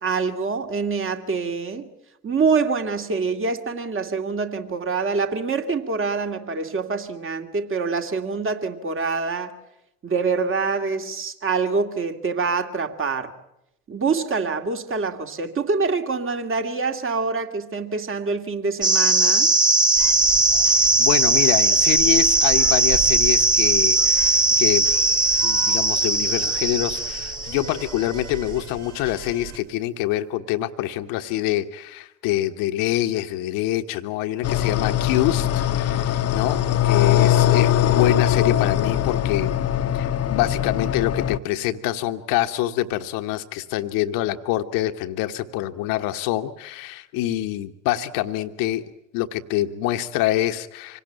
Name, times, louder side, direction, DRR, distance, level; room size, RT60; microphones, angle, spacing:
voice 1, 0.0-1.9 2.2-9.5 10.0-13.3 13.9-19.5, right 4 dB, 35° right, 7 dB, 2.4 m, -25 dB
sound 1, 18.8-28.0, right 2 dB, 10° right, 1.4 m, -19 dB
sound 2, 20.0-29.6, right 4 dB, 75° right, 3.0 m, -37 dB
voice 2, 21.0-24.9 25.4-39.5 39.9-48.8 49.1-51.0, left 14 dB, 60° left, 8 dB, 1.2 m, -25 dB
sound 3, 34.4-41.4, left 11 dB, 40° left, 1.0 m, -21 dB
25.5 x 18.5 x 9.0 m, 0.87 s
figure-of-eight pair, 60°, 38 cm